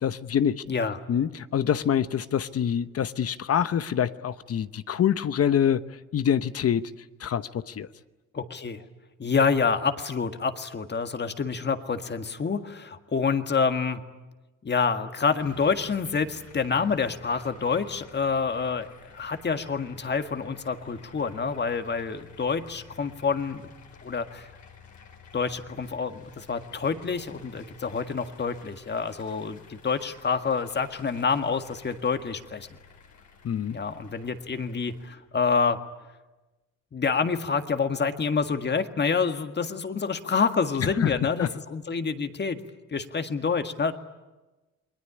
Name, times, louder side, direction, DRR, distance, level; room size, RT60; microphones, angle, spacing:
voice 1, 0.0-0.6 1.1-6.9 7.2-7.9 33.4-33.8 40.8-41.5, left 9 dB, 50° left, 13 dB, 1.0 m, -26 dB
voice 2, 0.7-1.0 8.3-8.8 9.2-14.0 14.6-23.7 24.0-24.5 25.3-32.7 33.7-35.8 36.9-42.6 42.9-43.9, left 5 dB, 35° left, 8 dB, 1.8 m, -27 dB
sound 1, 15.4-35.1, left 5 dB, 70° left, 4.7 m, -52 dB
29.0 x 21.0 x 9.8 m, 1.1 s
cardioid pair, 90°, 30 cm